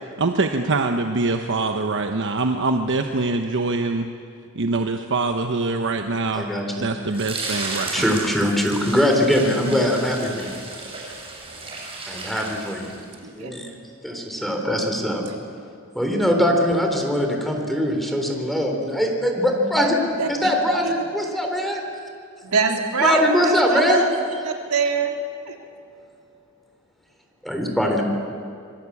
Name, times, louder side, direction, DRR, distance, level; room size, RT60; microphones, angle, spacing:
voice 1, 0.2-4.1 4.5-6.5 6.8-8.0, right 3 dB, 60° right, 5 dB, 1.1 m, -24 dB
voice 2, 6.3-6.9 7.9-10.5 12.1-12.9 13.3-13.7 14.0-15.2 16.0-20.0 20.3-21.8 23.0-24.0 27.4-28.0, equal, ahead, 2 dB, 3.5 m, -21 dB
sound 1, 7.1-13.2, right 3 dB, 25° right, 6.6 m, -34 dB
voice 3, 9.3-9.7 13.2-13.5 20.2-20.5 20.8-20.9 22.4-24.1 24.4-25.2 25.4-25.6, right 5 dB, 85° right, 3 dB, 3.0 m, -24 dB
27.0 x 21.0 x 8.5 m, 2.5 s
head